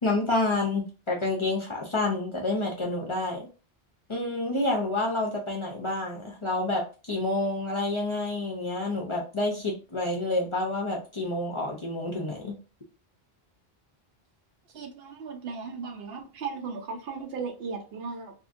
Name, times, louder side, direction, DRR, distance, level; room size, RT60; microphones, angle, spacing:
voice 1, 0.0-3.5 4.1-12.5, left 2 dB, 40° left, 0.5 m, -28 dB
voice 2, 14.7-18.3, right 5 dB, 75° right, 0.9 m, -36 dB
2.7 x 2.5 x 2.5 m
omnidirectional pair, 1.0 m